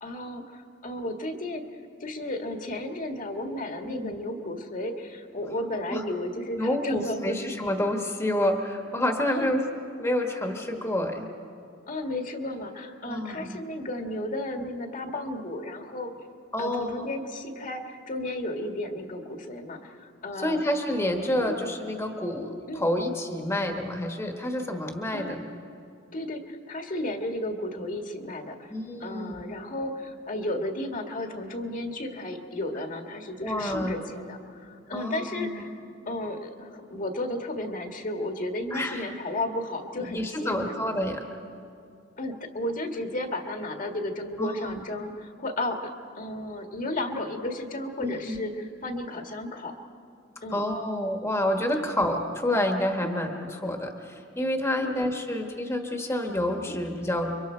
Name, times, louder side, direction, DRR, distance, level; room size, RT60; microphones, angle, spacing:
voice 1, 0.0-7.4 9.3-9.6 11.9-16.1 16.6-20.6 21.4-21.6 22.7-22.8 25.1-25.4 26.1-28.7 29.0-35.7 36.0-40.7 42.2-45.9 46.2-49.7 50.4-50.6 51.7-51.9 53.0-53.1 54.7-55.1 56.7-56.8, left 1 dB, 45° left, 4 dB, 1.7 m, -33 dB
voice 2, 6.6-9.6 10.0-11.2 13.1-13.5 16.5-17.1 20.4-25.4 28.7-29.4 33.4-34.0 34.9-35.6 38.7-39.0 40.1-41.2 44.4-44.8 48.0-48.5 50.5-57.3, left 1 dB, 15° left, 3 dB, 1.4 m, -28 dB
30.0 x 24.0 x 4.5 m, 2.5 s
head